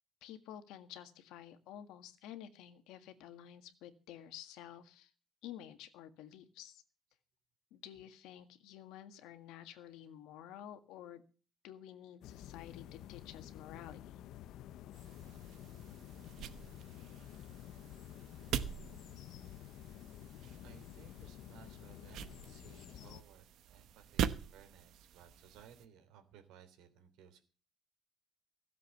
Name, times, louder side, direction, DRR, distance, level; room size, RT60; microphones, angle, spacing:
voice 1, 0.2-5.1 5.4-6.8 7.7-11.2 11.6-14.2, left 11 dB, 90° left, 9 dB, 1.7 m, -51 dB
sound 1, 12.2-23.2, left 12 dB, 65° left, 0.7 m, -51 dB
sound 2, 14.9-25.9, right 8 dB, 55° right, 1.0 m, -44 dB
voice 2, 20.6-27.4, right 8 dB, 85° right, 8 dB, 3.2 m, -60 dB
16.0 x 7.5 x 7.0 m, 0.38 s
cardioid pair, 165°, 0 cm